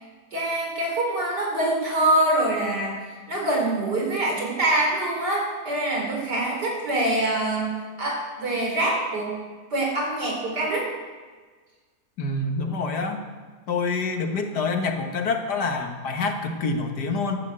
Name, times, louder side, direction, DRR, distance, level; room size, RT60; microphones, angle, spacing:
voice 1, 0.3-2.9 3.3-9.3 9.7-10.9, right 1 dB, 80° right, -1 dB, 4.7 m, -24 dB
voice 2, 12.2-13.2 13.7-17.4, left 3 dB, 80° left, 4 dB, 2.1 m, -26 dB
12.0 x 11.5 x 8.0 m, 1.4 s
omnidirectional pair, 1.8 m